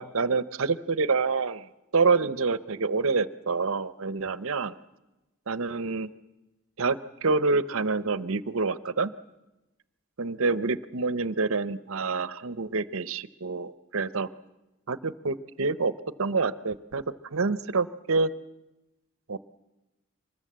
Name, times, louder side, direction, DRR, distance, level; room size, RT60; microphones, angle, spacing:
voice 1, 0.0-1.6 1.9-4.7 5.5-6.1 6.8-9.1 10.2-14.3 14.9-15.9 16.2-17.0 17.3-18.3 19.3-19.4, right 4 dB, 65° right, 16 dB, 0.7 m, -27 dB
24.5 x 20.5 x 7.5 m, 1.0 s
head